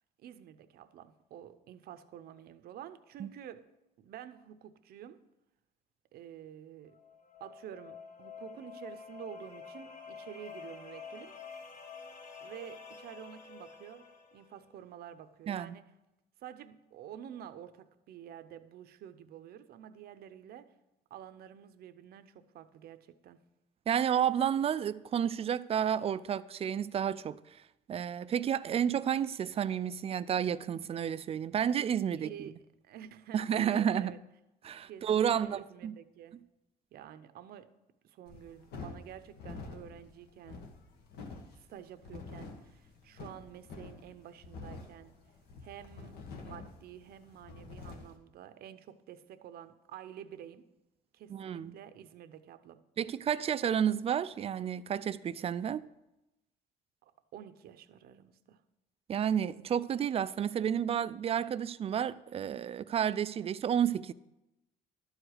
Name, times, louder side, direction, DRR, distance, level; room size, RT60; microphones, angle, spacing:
voice 1, 0.2-3.7 4.0-5.2 6.1-7.0 7.4-11.4 12.4-14.1 14.3-15.9 16.4-20.7 21.1-23.4 32.1-34.2 34.9-36.4 36.9-37.7 38.0-40.7 41.6-45.2 45.6-50.7 51.1-52.8 57.0-58.6, right 10 dB, 65° right, 0.7 m, -49 dB
sound 1, 6.9-14.6, left 5 dB, 45° left, 1.1 m, -49 dB
voice 2, 23.9-27.4 27.9-32.3 33.3-34.1 34.6-35.9 51.3-51.7 53.0-55.8 59.1-64.1, right 9 dB, 35° right, 0.4 m, -31 dB
sound 2, 38.3-48.2, left 4 dB, 70° left, 1.4 m, -47 dB
12.0 x 4.9 x 6.4 m
cardioid pair, 110°, 17 cm